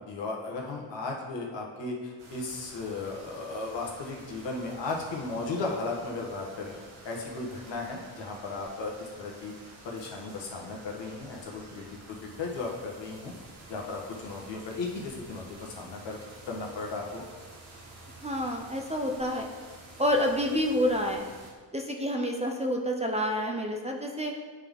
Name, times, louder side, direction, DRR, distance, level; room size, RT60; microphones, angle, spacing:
voice 1, 0.0-6.7 7.0-9.5 9.8-13.3 13.7-16.2 16.5-17.2, left 3 dB, 65° left, -1 dB, 1.5 m, -36 dB
sound 1, 2.2-21.5, right 2 dB, 85° right, 1.6 m, -50 dB
voice 2, 18.2-19.5 20.0-21.2 21.7-24.3, equal, 15° right, 2 dB, 0.6 m, -28 dB
9.1 x 3.8 x 3.7 m, 1.5 s
cardioid pair, 75°, 47 cm